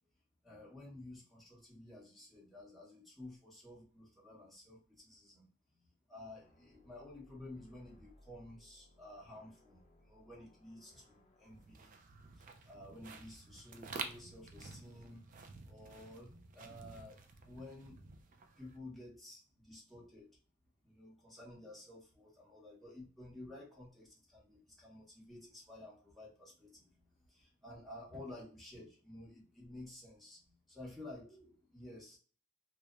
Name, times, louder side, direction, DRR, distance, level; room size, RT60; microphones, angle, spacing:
voice 1, 0.4-5.5 6.1-12.0 12.3-15.2 15.6-18.0 18.6-20.3 20.8-32.2, left 1 dB, ahead, -6 dB, 0.9 m, -53 dB
sound 1, 6.4-11.8, left 1 dB, 35° left, 0.6 m, -66 dB
sound 2, 11.5-18.8, right 4 dB, 40° right, 0.3 m, -50 dB
2.9 x 2.0 x 2.3 m, 0.38 s
head